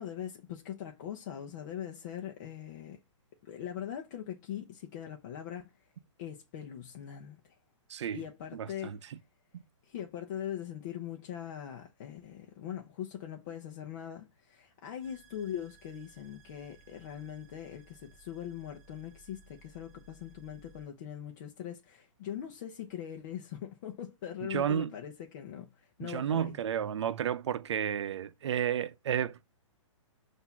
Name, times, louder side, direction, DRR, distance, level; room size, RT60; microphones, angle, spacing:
voice 1, 0.0-3.0 3.4-5.7 6.2-7.5 8.1-9.0 9.8-26.6, left 10 dB, 35° left, 0.9 m, -41 dB
voice 2, 7.9-8.2 8.5-9.2 24.5-24.9 26.0-29.4, right 9 dB, 60° right, 0.7 m, -32 dB
sound 1, 15.0-20.9, right 4 dB, 15° right, 2.7 m, -60 dB
7.9 x 2.7 x 5.9 m
hypercardioid pair, 160°, 16 cm